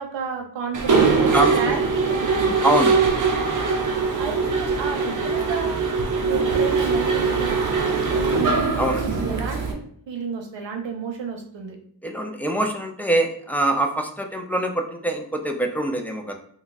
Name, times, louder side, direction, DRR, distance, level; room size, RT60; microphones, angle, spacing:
voice 1, 0.0-2.6 4.2-5.9 6.2-8.6 9.0-9.8 10.1-11.8, right 5 dB, 85° right, 4 dB, 0.7 m, -32 dB
Mechanisms, 0.7-9.7, right 4 dB, 45° right, 0.7 m, -22 dB
voice 2, 1.3-1.8 2.6-3.1 8.8-9.0 12.0-16.4, right 1 dB, 5° left, 3 dB, 0.4 m, -24 dB
2.5 x 2.3 x 3.9 m, 0.63 s
wide cardioid pair, 80°, 43 cm